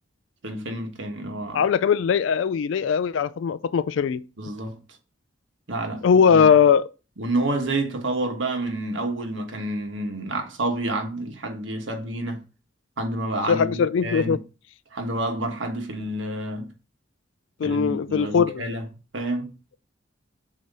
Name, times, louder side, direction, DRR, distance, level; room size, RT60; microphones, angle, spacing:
voice 1, 0.4-1.6 4.4-4.8 5.7-6.5 7.2-12.4 13.0-14.4 14.9-16.7 17.6-18.8 19.1-19.5, right 2 dB, 85° right, 1.4 m, -29 dB
voice 2, 1.5-4.2 6.0-6.8 13.5-14.4 17.6-18.6, left 6 dB, 85° left, 0.4 m, -20 dB
7.6 x 2.9 x 5.4 m
head